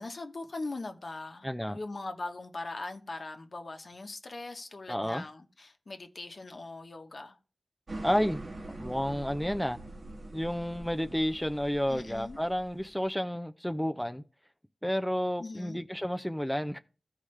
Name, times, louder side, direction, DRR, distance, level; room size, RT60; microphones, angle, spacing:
voice 1, 0.0-7.4 11.9-12.4 15.4-15.8, left 2 dB, 60° left, 1.0 m, -41 dB
voice 2, 1.4-1.8 4.9-5.2 8.0-8.5 8.8-9.8 10.3-14.2 14.8-16.8, equal, 5° left, 0.5 m, -31 dB
sound 1, 7.9-13.1, right 2 dB, 70° right, 1.3 m, -44 dB
14.5 x 4.9 x 3.3 m
wide cardioid pair, 75°, 0 cm